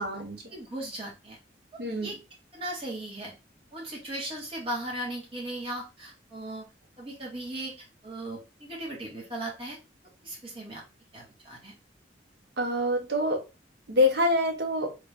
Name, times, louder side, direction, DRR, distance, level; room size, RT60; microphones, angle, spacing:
voice 1, 0.0-0.6 1.8-2.1 12.6-13.4 13.9-14.9, left 1 dB, 60° right, 0.8 m, -26 dB
voice 2, 0.5-1.4 1.7-2.2 2.5-3.3 3.7-6.7 7.0-9.8 10.2-10.8 11.1-11.7, right 1 dB, 30° right, 1.4 m, -37 dB
3.2 x 2.5 x 3.2 m
head